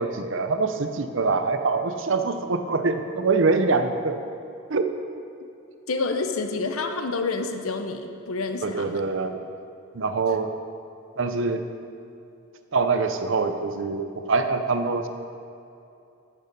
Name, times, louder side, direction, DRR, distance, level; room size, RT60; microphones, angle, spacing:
voice 1, 0.0-4.2 4.7-4.9 8.6-9.4 9.9-10.5 11.2-11.7 12.7-15.1, right 4 dB, 60° right, 8 dB, 0.7 m, -24 dB
voice 2, 5.9-9.0, left 3 dB, 80° left, 6 dB, 0.8 m, -28 dB
13.5 x 6.6 x 5.3 m, 2.6 s
head